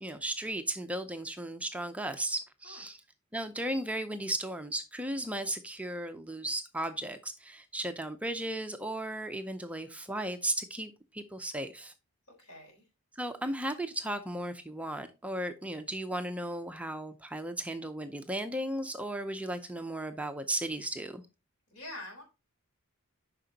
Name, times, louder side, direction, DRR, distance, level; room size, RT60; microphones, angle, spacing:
voice 1, 0.0-3.0 3.3-11.9 13.2-21.2, right 1 dB, 5° right, 0.5 m, -35 dB
voice 2, 12.4-12.9 21.7-22.2, left 1 dB, 75° left, 3.9 m, -45 dB
8.9 x 5.9 x 2.8 m
head